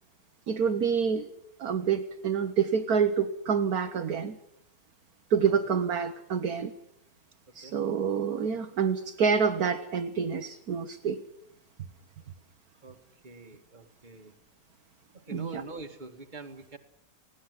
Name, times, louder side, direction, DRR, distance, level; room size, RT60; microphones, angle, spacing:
voice 1, 0.5-1.3 1.6-4.4 5.3-6.7 7.5-11.2 15.3-15.6, right 6 dB, 60° right, 6 dB, 1.6 m, -27 dB
voice 2, 13.2-14.3 15.1-16.8, right 3 dB, 25° right, 5 dB, 2.0 m, -45 dB
20.0 x 17.5 x 9.6 m, 0.75 s
omnidirectional pair, 1.9 m